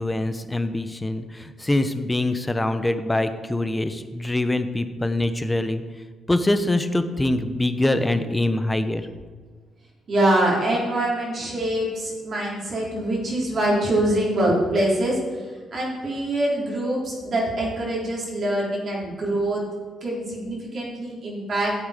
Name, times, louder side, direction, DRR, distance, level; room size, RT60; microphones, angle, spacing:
voice 1, 0.0-5.8 6.3-9.1, left 1 dB, 15° left, 10 dB, 0.8 m, -24 dB
voice 2, 10.1-15.2 15.7-19.6 20.0-21.7, right 1 dB, 50° right, -3 dB, 3.8 m, -24 dB
11.5 x 8.1 x 5.1 m, 1.5 s
cardioid pair, 90°, 0 cm